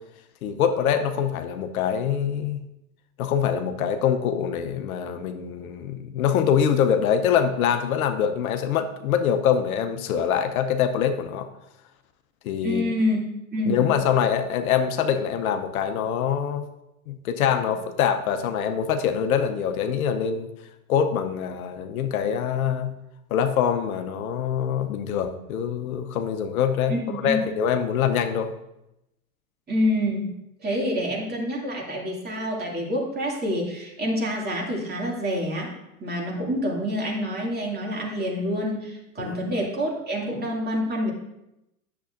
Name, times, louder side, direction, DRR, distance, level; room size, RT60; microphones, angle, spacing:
voice 1, 0.4-2.6 3.2-11.5 12.4-12.8 13.7-16.7 17.1-20.5 20.9-22.9 23.3-26.9 27.2-28.5 39.2-39.4, left 8 dB, 70° left, 8 dB, 0.8 m, -24 dB
voice 2, 12.6-13.2 13.5-13.8 26.9-27.4 29.7-30.3 30.6-35.7 36.0-41.1, equal, 20° right, -2 dB, 2.4 m, -27 dB
10.0 x 6.9 x 2.6 m, 0.88 s
hypercardioid pair, 95°, 45 cm